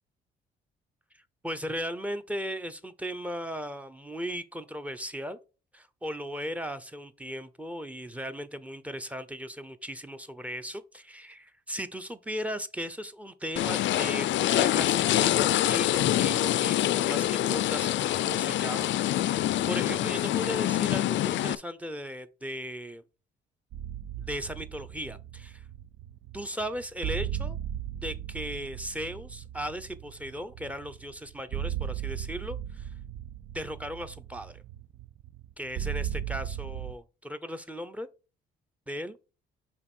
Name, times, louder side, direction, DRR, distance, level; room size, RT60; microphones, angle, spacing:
voice 1, 1.4-5.4 5.7-18.9 19.2-23.0 24.2-25.6 26.3-27.6 28.0-32.9 33.5-34.6 35.6-38.1 38.9-39.2, equal, 5° right, 0.8 m, -37 dB
sound 1, 13.6-21.6, left 13 dB, 70° left, 0.4 m, -25 dB
sound 2, 23.7-36.9, right 10 dB, 80° right, 0.7 m, -37 dB
5.7 x 3.9 x 4.4 m
cardioid pair, 90°, 20 cm